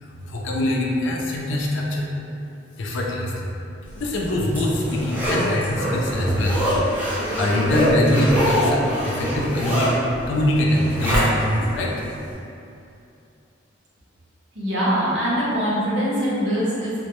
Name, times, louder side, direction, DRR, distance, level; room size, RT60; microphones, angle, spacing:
voice 1, 0.0-2.1 2.8-3.5 3.9-6.6 7.1-10.0 10.3-12.0, left 1 dB, 80° left, -2 dB, 0.4 m, -23 dB
Zipper (clothing), 4.0-11.6 12.1-12.2, equal, 10° right, 0.5 m, -24 dB
voice 2, 14.5-16.9, equal, 70° right, -8 dB, 0.6 m, -23 dB
2.1 x 2.0 x 2.9 m, 2.6 s
head